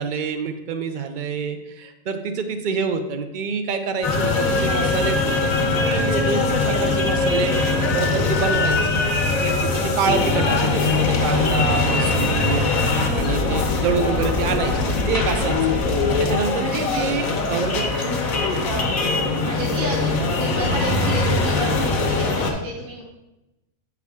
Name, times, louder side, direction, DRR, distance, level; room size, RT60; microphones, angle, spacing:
voice 1, 0.0-7.6 7.9-9.0 9.4-15.7 16.2-17.8 18.7-19.0, right 5 dB, 65° right, 8 dB, 0.4 m, -27 dB
sound 1, 4.0-22.5, left 3 dB, 85° left, 1.3 m, -21 dB
voice 2, 11.8-12.4 16.6-17.4 19.0-23.0, right 1 dB, 45° right, -4 dB, 1.1 m, -31 dB
8.1 x 4.8 x 3.5 m, 0.97 s
omnidirectional pair, 1.4 m